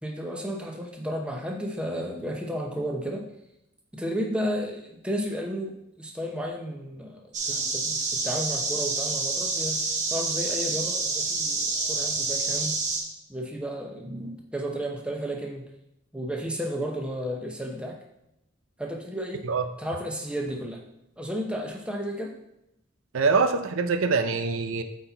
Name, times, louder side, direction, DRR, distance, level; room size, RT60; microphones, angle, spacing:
voice 1, 0.0-3.3 3.9-12.8 13.3-15.7 16.1-18.0 18.8-19.4 19.8-20.8 21.2-22.3, equal, 5° right, 0 dB, 0.8 m, -33 dB
sound 1, 7.3-13.0, right 3 dB, 35° right, 1.0 m, -28 dB
voice 2, 23.1-24.8, right 4 dB, 85° right, 9 dB, 0.6 m, -24 dB
8.5 x 4.3 x 4.0 m, 0.83 s
head